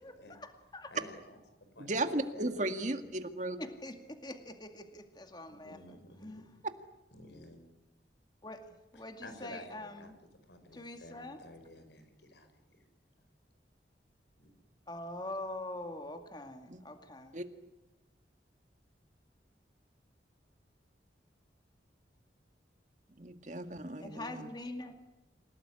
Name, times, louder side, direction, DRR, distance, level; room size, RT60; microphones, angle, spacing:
voice 1, 0.0-0.9 3.6-6.5 8.4-10.1 10.7-11.4 13.2-13.3 14.9-17.4 24.0-25.0, left 1 dB, 25° left, 6 dB, 2.2 m, -44 dB
voice 2, 0.9-1.4 1.8-2.6 5.6-6.6 7.1-7.6 8.9-10.1 10.5-12.9 14.4-14.5, left 1 dB, 80° left, 8 dB, 5.3 m, -52 dB
voice 3, 1.8-3.6 16.7-16.8 17.3-17.5 23.2-24.5, right 1 dB, 45° right, 8 dB, 1.9 m, -35 dB
28.0 x 18.0 x 10.0 m, 0.99 s
head